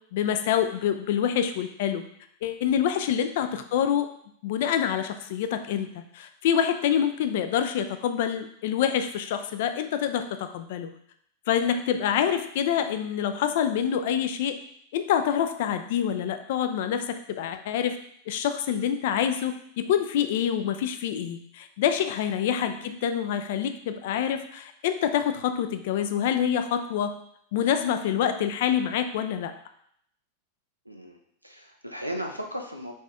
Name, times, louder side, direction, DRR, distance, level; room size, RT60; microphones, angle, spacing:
voice 1, 0.1-2.0 2.4-4.1 4.4-10.9 11.5-14.6 14.9-18.0 18.3-27.1 27.5-29.5, left 9 dB, 55° left, 8 dB, 0.4 m, -26 dB
voice 2, 30.8-32.9, equal, 90° right, 2 dB, 0.6 m, -37 dB
4.2 x 3.6 x 3.4 m, 0.69 s
figure-of-eight pair, 90°, 0 cm